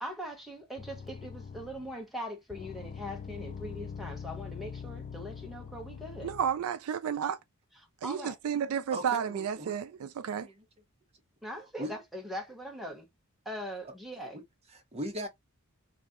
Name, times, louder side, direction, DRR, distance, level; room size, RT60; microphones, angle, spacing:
voice 1, 0.0-6.3 8.0-8.3 9.0-9.1 11.4-13.1 13.5-14.4, equal, ahead, 0.9 m, -41 dB
sound 1, 0.8-2.0 2.5-6.6, left 6 dB, 35° left, 0.3 m, -43 dB
voice 2, 6.2-7.4 8.0-10.5, right 8 dB, 70° right, 0.4 m, -32 dB
voice 3, 8.9-9.7 10.4-10.5 11.8-11.9 13.8-14.4 14.7-15.3, equal, 30° right, 0.8 m, -39 dB
3.1 x 2.7 x 3.6 m
head